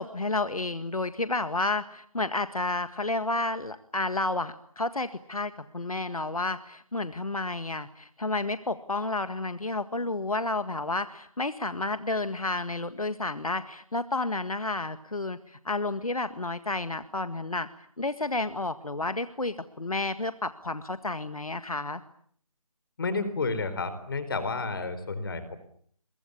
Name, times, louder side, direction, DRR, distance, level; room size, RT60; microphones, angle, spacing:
voice 1, 0.0-17.7 18.0-22.0, left 2 dB, 75° left, 11 dB, 1.9 m, -31 dB
voice 2, 23.0-25.6, left 3 dB, 40° left, 12 dB, 4.5 m, -31 dB
28.5 x 24.0 x 8.5 m, 0.64 s
figure-of-eight pair, 160°, 19 cm